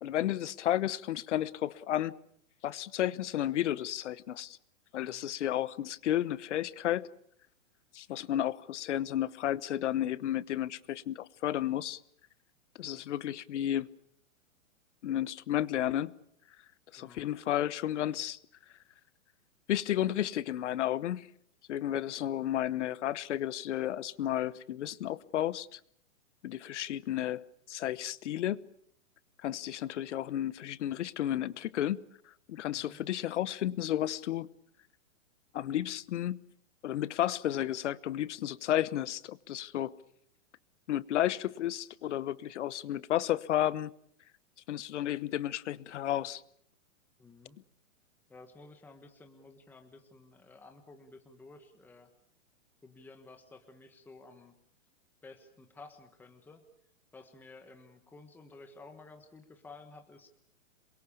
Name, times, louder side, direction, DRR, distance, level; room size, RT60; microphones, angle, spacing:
voice 1, 0.0-2.2 2.6-4.6 4.9-7.1 7.9-12.0 12.8-13.9 15.0-16.1 16.9-18.4 19.7-21.3 21.7-25.8 26.4-28.7 29.4-32.0 32.5-34.5 35.5-36.4 36.8-39.9 40.9-43.9 44.7-46.4, left 12 dB, 60° left, 1.1 m, -32 dB
voice 2, 5.0-5.3 17.0-17.3 32.6-33.0 47.2-47.6 48.3-52.1 52.8-54.5 55.2-56.6 57.1-60.3, left 3 dB, 5° left, 1.4 m, -53 dB
27.5 x 23.0 x 7.1 m
hypercardioid pair, 160°, 41 cm